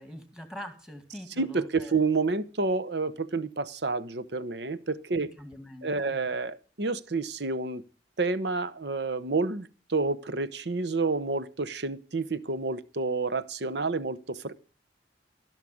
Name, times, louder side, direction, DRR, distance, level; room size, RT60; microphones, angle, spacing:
voice 1, 0.0-2.0 5.2-6.2, equal, 5° right, 2.1 m, -44 dB
voice 2, 1.4-5.3 5.8-7.8 8.2-14.5, right 3 dB, 65° right, 0.9 m, -29 dB
15.5 x 6.5 x 8.6 m
head